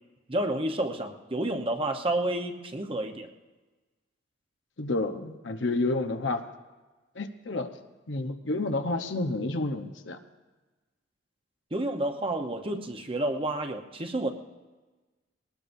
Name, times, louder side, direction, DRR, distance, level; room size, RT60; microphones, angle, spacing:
voice 1, 0.3-3.3 11.7-14.3, right 1 dB, 30° right, 5 dB, 1.0 m, -30 dB
voice 2, 4.8-6.4 7.1-7.7 8.1-10.2, left 2 dB, 70° left, 7 dB, 1.0 m, -30 dB
21.0 x 19.0 x 2.7 m, 1.2 s
head